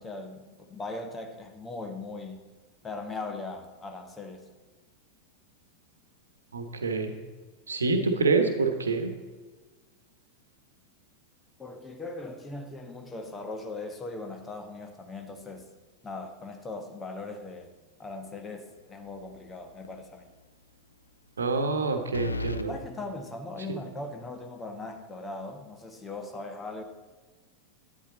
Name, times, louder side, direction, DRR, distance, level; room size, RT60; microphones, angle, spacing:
voice 1, 0.0-2.4 2.8-4.5 11.6-15.7 16.0-17.7 18.0-20.3 22.7-26.8, left 2 dB, 15° left, 6 dB, 1.2 m, -39 dB
voice 2, 6.5-7.1 7.7-9.1 21.4-22.7, right 4 dB, 70° right, 6 dB, 1.2 m, -26 dB
sound 1, 19.0-19.5 19.8-19.9 22.1-22.7, left 2 dB, 80° left, 0.4 m, -34 dB
11.5 x 9.2 x 4.2 m, 1.4 s
figure-of-eight pair, 90°, 0 cm